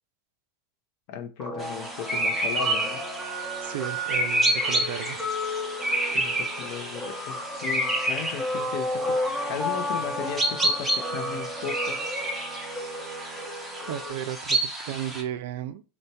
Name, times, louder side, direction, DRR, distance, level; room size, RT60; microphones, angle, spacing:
voice 1, 1.1-3.0 6.1-9.2 9.5-12.0, left 8 dB, 55° left, 0.5 m, -36 dB
Guitar, 1.4-14.1, left 1 dB, 10° left, 1.0 m, -33 dB
sound 1, 1.6-15.2, right 1 dB, 5° right, 0.6 m, -29 dB
voice 2, 3.6-5.3 13.9-15.8, right 11 dB, 65° right, 0.3 m, -34 dB
4.3 x 2.1 x 2.7 m
supercardioid pair, 150°, 0 cm